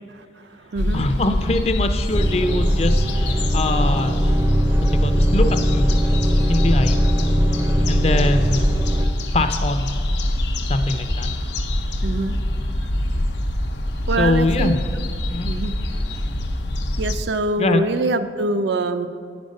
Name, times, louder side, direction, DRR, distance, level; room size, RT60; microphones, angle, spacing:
voice 1, 0.4-1.1 12.0-12.4 14.1-14.7 15.4-15.7 17.0-19.1, right 2 dB, 80° right, 10 dB, 0.5 m, -24 dB
sound 1, 0.8-17.2, left 1 dB, 85° left, 0.8 m, -24 dB
voice 2, 0.9-4.1 4.9-5.9 6.5-7.0 7.9-8.6 9.3-9.9 10.7-11.3 14.2-14.8 15.3-15.5 17.6-17.8, left 2 dB, 35° left, 8 dB, 0.4 m, -23 dB
sound 2, 2.1-9.1, equal, 20° right, 0.5 m, -20 dB
10.5 x 5.2 x 5.3 m, 2.2 s
head